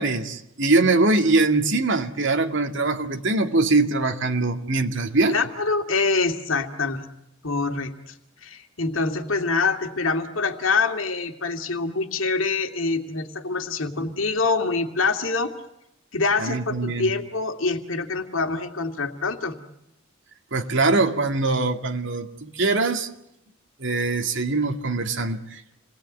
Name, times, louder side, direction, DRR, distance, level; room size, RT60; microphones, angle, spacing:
voice 1, 0.0-5.4 16.4-17.1 20.5-23.1 23.8-25.8, right 3 dB, 65° right, 5 dB, 2.1 m, -22 dB
voice 2, 5.3-7.1 7.4-8.1 8.4-15.5 16.1-19.5, left 4 dB, 75° left, 5 dB, 2.3 m, -25 dB
28.5 x 20.5 x 9.4 m, 0.84 s
head